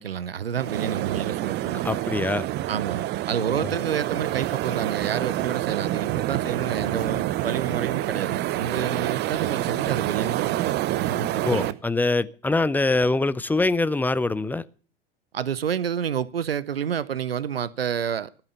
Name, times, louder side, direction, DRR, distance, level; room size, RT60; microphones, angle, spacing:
voice 1, 0.0-1.8 2.7-11.7 15.3-18.3, right 8 dB, 80° right, 0.7 m, -29 dB
sound 1, 0.6-11.7, right 15 dB, 35° right, 0.8 m, -27 dB
voice 2, 1.8-2.5 11.4-14.7, left 2 dB, 5° left, 0.6 m, -23 dB
15.5 x 9.0 x 6.7 m
figure-of-eight pair, 80°, 29 cm